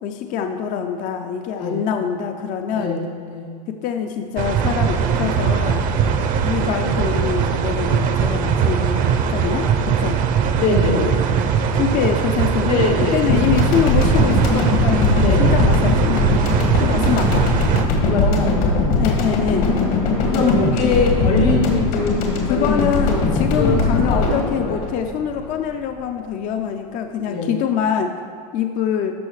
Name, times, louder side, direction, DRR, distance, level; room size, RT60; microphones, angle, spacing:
voice 1, 0.0-3.0 3.8-5.9 6.4-9.0 9.3-10.2 10.9-11.2 11.7-12.7 13.1-16.2 16.9-17.5 19.0-19.7 20.3-20.6 22.5-28.1 28.5-29.1, left 8 dB, 40° left, 5 dB, 0.5 m, -24 dB
voice 2, 1.6-1.9 2.8-3.6 7.9-8.1 10.6-11.3 12.6-13.5 15.2-15.5 17.9-18.8 20.3-22.8 23.6-24.8 27.2-27.6, left 3 dB, 90° left, -3 dB, 2.2 m, -23 dB
sound 1, 4.4-17.8, right 7 dB, 45° right, 0.6 m, -20 dB
sound 2, 13.3-25.8, left 3 dB, 70° left, 1.9 m, -20 dB
13.0 x 5.5 x 3.2 m, 2.1 s
supercardioid pair, 120°, 20 cm